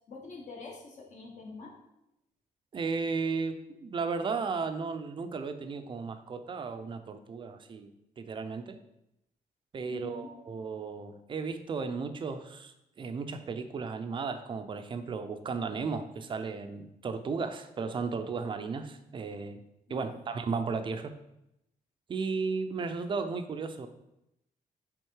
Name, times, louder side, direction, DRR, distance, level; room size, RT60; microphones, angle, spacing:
voice 1, 0.1-1.7 9.9-10.3 19.9-20.2, left 4 dB, 55° left, -1 dB, 1.4 m, -44 dB
voice 2, 2.7-7.9 8.2-8.8 9.7-19.6 19.9-21.1 22.1-23.9, right 4 dB, 35° right, 8 dB, 0.5 m, -34 dB
8.0 x 3.7 x 4.6 m, 0.85 s
wide cardioid pair, 170°, 15 cm